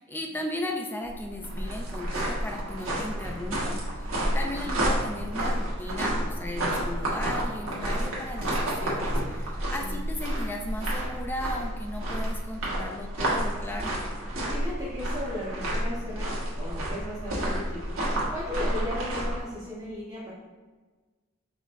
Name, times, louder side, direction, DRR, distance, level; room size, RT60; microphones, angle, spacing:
voice 1, 0.0-4.1 4.3-14.0, left 1 dB, 10° left, 2 dB, 0.4 m, -36 dB
sound 1, 1.0-19.4, right 1 dB, 75° right, 1.3 m, -30 dB
voice 2, 9.6-10.0 14.5-16.3 16.5-17.8 18.3-20.3, left 1 dB, 15° right, -12 dB, 1.3 m, -36 dB
5.0 x 4.0 x 2.6 m, 1.3 s
head